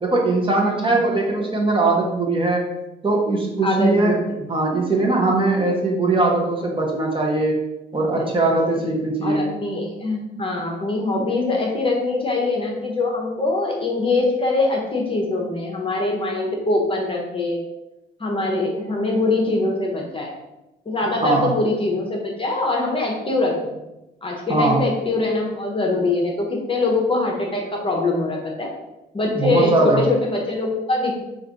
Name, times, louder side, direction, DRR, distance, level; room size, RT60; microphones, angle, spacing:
voice 1, 0.0-2.7 3.0-4.2 4.5-7.5 7.9-9.5 21.2-21.5 24.5-24.9 29.4-30.1, right 2 dB, 25° right, -1 dB, 0.8 m, -20 dB
voice 2, 0.6-1.1 1.4-1.6 3.6-4.1 8.1-8.3 8.6-8.8 9.2-17.6 18.2-20.3 20.9-23.8 24.2-28.7 29.1-31.3, left 2 dB, 25° left, 0 dB, 0.8 m, -23 dB
3.2 x 2.5 x 3.8 m, 0.95 s
cardioid pair, 90°, 20 cm